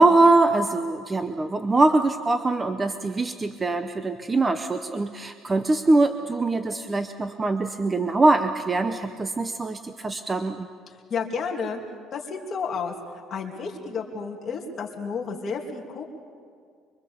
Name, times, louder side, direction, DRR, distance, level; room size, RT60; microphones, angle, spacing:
voice 1, 0.0-10.7, right 2 dB, 15° right, 8 dB, 0.7 m, -22 dB
voice 2, 10.9-11.8 12.1-12.9 13.3-16.0, left 5 dB, 30° left, 0 dB, 2.8 m, -31 dB
24.5 x 24.0 x 7.0 m, 2.1 s
cardioid pair, 165°, 0 cm